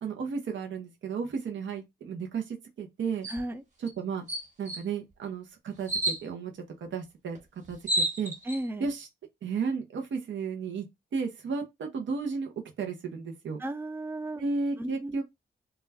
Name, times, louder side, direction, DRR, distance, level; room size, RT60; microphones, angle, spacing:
voice 1, 0.0-3.3 4.0-4.3 4.6-6.5 6.8-7.4 7.7-7.8 8.2-8.3 8.8-9.1 9.4-10.9 11.1-12.5 12.8-13.6 14.4-15.2, right 5 dB, 85° right, 0.6 m, -33 dB
sound 1, 3.2-3.4 3.9-4.0 4.3-4.8 5.9-6.2 7.4-7.5 7.6-8.6, right 1 dB, 40° right, 1.1 m, -29 dB
voice 2, 3.3-3.6 8.5-8.9 13.6-14.4 14.8-15.2, right 1 dB, 10° right, 0.4 m, -34 dB
2.2 x 2.1 x 3.3 m
cardioid pair, 65°, 19 cm